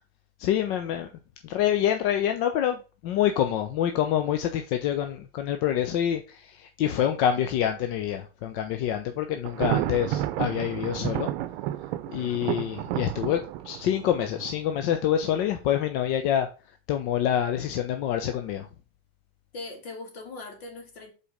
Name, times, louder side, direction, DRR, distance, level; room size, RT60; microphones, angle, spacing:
voice 1, 0.4-1.1 1.4-11.3 12.1-16.5 16.9-18.7, left 10 dB, 60° left, 0.8 m, -26 dB
Thunder, 9.5-15.3, right 13 dB, 60° right, 0.7 m, -31 dB
voice 2, 19.5-21.1, left 3 dB, 80° left, 2.9 m, -40 dB
5.0 x 4.3 x 5.0 m
hypercardioid pair, 110°, 31 cm